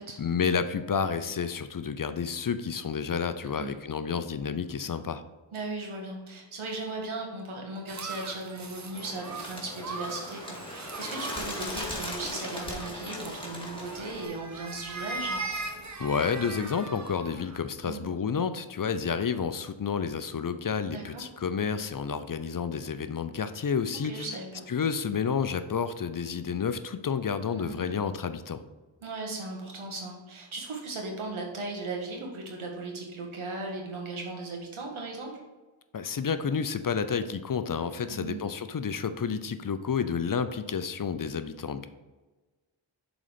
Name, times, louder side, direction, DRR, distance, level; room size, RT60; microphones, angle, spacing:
voice 1, 0.2-5.2 16.0-24.3 24.7-28.6 35.9-41.9, left 6 dB, 45° left, 11 dB, 0.6 m, -30 dB
voice 2, 5.5-15.4 17.8-18.1 20.9-21.2 24.0-24.7 27.5-28.0 29.0-35.3 38.1-38.4, right 2 dB, 90° right, 0 dB, 1.6 m, -37 dB
sound 1, 7.9-17.6, right 3 dB, 35° right, 0.9 m, -40 dB
Bird, 8.9-14.3, left 1 dB, 10° left, 1.9 m, -38 dB
7.2 x 4.0 x 5.1 m, 1.2 s
cardioid pair, 45°, 48 cm